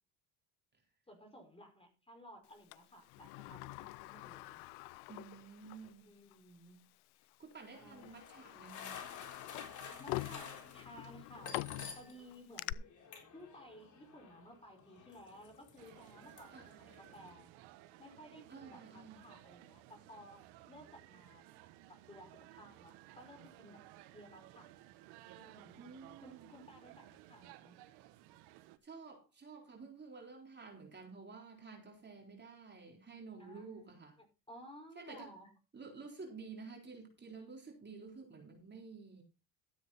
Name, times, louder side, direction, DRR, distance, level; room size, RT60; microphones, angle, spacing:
voice 1, 1.1-4.6 6.0-6.9 7.2-7.3 7.8-8.1 9.8-11.6 12.0-12.8 13.3-17.5 18.0-21.4 21.9-23.8 24.1-24.7 25.3-25.9 26.2-27.8 33.4-33.9 34.2-35.5, equal, 15° left, 5.1 m, -56 dB
Sliding door, 2.7-5.9 6.3-6.4 7.3-7.5 8.0-12.7, left 21 dB, 85° left, 0.6 m, -45 dB
voice 2, 5.1-6.2 7.4-9.0 16.5-17.0 18.5-19.3 25.8-26.5 28.8-34.2 35.0-35.4 35.7-39.2, right 4 dB, 30° right, 3.9 m, -51 dB
sound 1, 7.7-12.4 12.6-17.3, left 6 dB, 50° left, 3.8 m, -52 dB
sound 2, 15.8-28.8, right 15 dB, 90° right, 1.3 m, -58 dB
13.5 x 8.4 x 4.2 m
supercardioid pair, 90°, 38 cm